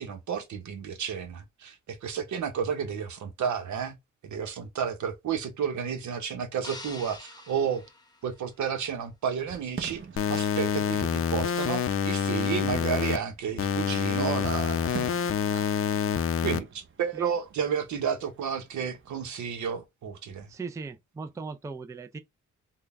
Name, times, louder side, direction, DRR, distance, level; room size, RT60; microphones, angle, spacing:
voice 1, 0.0-4.0 4.2-7.9 8.2-10.0 10.3-15.2 15.5-15.6 16.0-16.1 16.4-20.5, right 7 dB, 70° right, 0.9 m, -32 dB
sound 1, 6.6-8.9, left 2 dB, 15° left, 0.9 m, -46 dB
Fireworks, 9.4-19.3, right 5 dB, 40° right, 0.7 m, -47 dB
sound 2, 10.2-13.2 13.6-16.6, left 7 dB, 45° left, 0.5 m, -27 dB
voice 2, 20.5-22.2, right 4 dB, 10° right, 0.4 m, -38 dB
3.7 x 2.2 x 3.3 m
cardioid pair, 90°, 30 cm